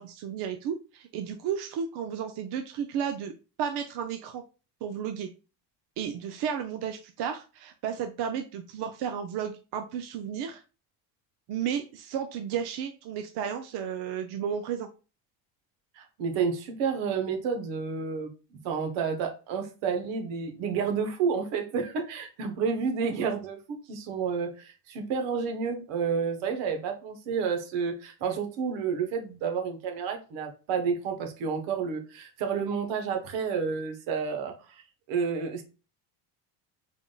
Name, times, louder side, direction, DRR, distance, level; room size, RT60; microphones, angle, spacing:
voice 1, 0.0-3.3 3.6-4.4 4.8-5.3 6.0-10.6 11.5-14.9, right 8 dB, 60° right, 6 dB, 0.6 m, -33 dB
voice 2, 16.0-18.3 18.6-34.8 35.1-35.6, right 6 dB, 80° right, 5 dB, 1.0 m, -30 dB
3.8 x 3.5 x 2.3 m, 0.32 s
supercardioid pair, 95°, 43 cm